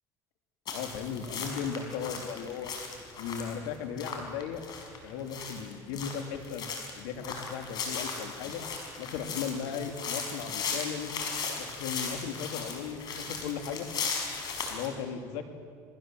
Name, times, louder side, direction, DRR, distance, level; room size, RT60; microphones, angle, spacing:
voice 1, 0.7-2.7 3.2-4.6 5.0-6.6 6.9-8.6 9.0-11.1 11.6-13.9 14.7-15.4, left 7 dB, 85° left, 6 dB, 2.7 m, -36 dB
sound 1, 0.7-14.9, left 5 dB, 50° left, 5.7 m, -37 dB
29.5 x 20.5 x 7.6 m, 2.1 s
supercardioid pair, 115°, 9 cm